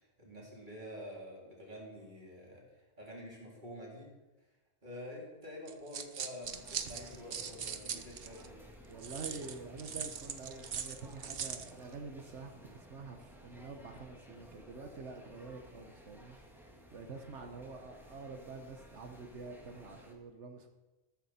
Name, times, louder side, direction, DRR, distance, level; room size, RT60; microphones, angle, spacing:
voice 1, 0.0-2.6 3.0-4.1 4.8-8.6, equal, 45° right, -4 dB, 3.7 m, -48 dB
sound 1, 5.7-8.5 9.0-11.7, right 7 dB, 60° right, 1.0 m, -41 dB
sound 2, 6.4-20.1, equal, ahead, 2.0 m, -56 dB
voice 2, 8.9-16.4 16.9-20.7, right 4 dB, 80° right, 6 dB, 1.4 m, -47 dB
13.5 x 13.0 x 4.3 m, 1.1 s
omnidirectional pair, 1.2 m